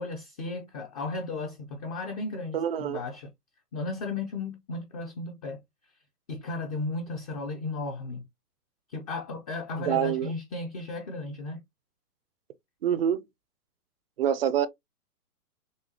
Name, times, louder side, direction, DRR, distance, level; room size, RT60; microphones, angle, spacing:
voice 1, 0.0-3.3 3.7-5.6 6.3-8.2 8.9-11.6, left 3 dB, 25° left, 0.5 m, -35 dB
voice 2, 2.5-3.0 9.9-10.3 12.8-13.2 14.2-14.7, right 9 dB, 40° right, 0.5 m, -26 dB
6.3 x 2.2 x 2.8 m
hypercardioid pair, 135°, 46 cm